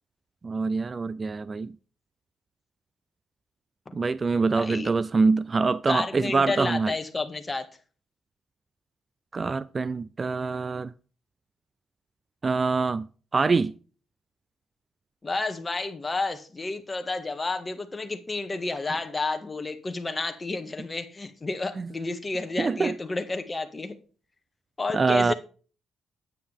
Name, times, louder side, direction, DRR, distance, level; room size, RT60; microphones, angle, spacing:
voice 1, 0.4-1.7 3.9-6.9 9.3-10.9 12.4-13.1 13.3-13.7 21.8-21.9 22.6-23.0 24.9-25.3, right 4 dB, 30° right, 0.4 m, -25 dB
voice 2, 4.6-4.9 5.9-7.6 15.2-24.0 24.8-25.3, left 3 dB, 25° left, 1.7 m, -31 dB
9.3 x 9.2 x 3.5 m
cardioid pair, 90°, 0 cm